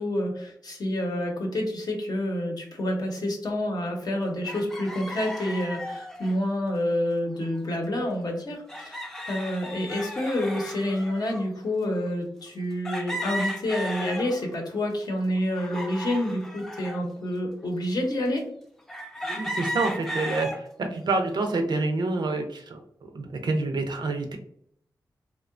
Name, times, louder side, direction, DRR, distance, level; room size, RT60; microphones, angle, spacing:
voice 1, 0.0-18.4, left 1 dB, 60° left, 1 dB, 0.7 m, -28 dB
sound 1, 4.4-6.4 7.5-7.7 8.0-8.1 8.7-11.5 12.1-12.2 12.8-14.6 15.0-17.0 17.6-17.7 18.9-20.6 21.1-21.6, equal, 5° left, 0.4 m, -35 dB
voice 2, 19.3-24.4, right 3 dB, 65° right, 5 dB, 0.5 m, -28 dB
2.7 x 2.1 x 2.4 m, 0.67 s
cardioid pair, 65°, 8 cm